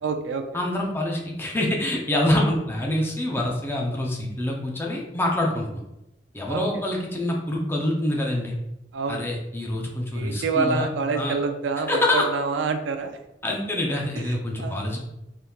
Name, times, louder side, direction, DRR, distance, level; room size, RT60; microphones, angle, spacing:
voice 1, 0.0-0.4 6.5-6.6 8.9-9.3 10.1-13.2 14.6-14.8, right 4 dB, 85° right, 7 dB, 0.4 m, -27 dB
voice 2, 0.5-5.7 6.3-8.6 9.1-10.9 11.1-11.3 11.9-12.3 13.4-15.0, left 1 dB, 15° left, -1 dB, 0.5 m, -25 dB
3.4 x 2.8 x 2.3 m, 0.89 s
head